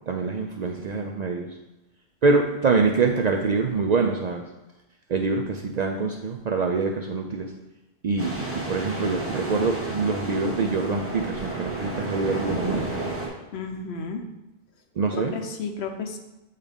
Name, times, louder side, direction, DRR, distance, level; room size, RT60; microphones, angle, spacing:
voice 1, 0.0-1.6 2.2-4.4 5.1-7.5 8.0-12.9 15.0-15.3, right 4 dB, 55° right, 2 dB, 0.5 m, -25 dB
sound 1, 8.2-13.3, right 2 dB, 15° right, 1.1 m, -31 dB
voice 2, 13.5-14.3 15.1-16.2, left 4 dB, 70° left, 4 dB, 1.0 m, -32 dB
8.2 x 3.7 x 3.4 m, 0.97 s
omnidirectional pair, 1.1 m